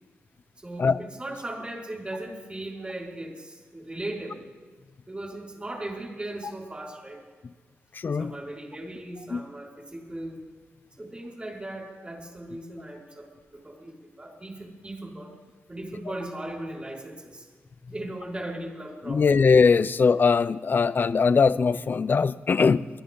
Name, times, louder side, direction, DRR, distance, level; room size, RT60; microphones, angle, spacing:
voice 1, 0.6-4.5 5.1-7.2 8.2-10.4 11.0-15.3 15.7-17.5 17.9-19.4, right 1 dB, 25° right, 5.1 m, -38 dB
voice 2, 7.9-8.3 9.3-9.4 19.1-22.9, left 5 dB, 45° left, 0.5 m, -21 dB
22.5 x 14.0 x 3.9 m
cardioid pair, 80°, 5 cm